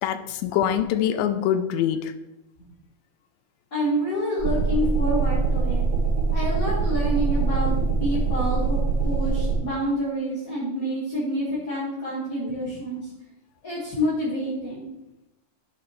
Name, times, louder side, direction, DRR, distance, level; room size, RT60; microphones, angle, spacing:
voice 1, 0.0-2.1, left 10 dB, 80° left, 10 dB, 2.2 m, -24 dB
voice 2, 3.7-5.9 6.3-13.1 13.6-14.9, equal, 35° left, -8 dB, 1.5 m, -28 dB
sound 1, 4.4-9.6, right 4 dB, 15° right, 3.3 m, -23 dB
11.0 x 5.9 x 3.1 m, 0.88 s
omnidirectional pair, 4.3 m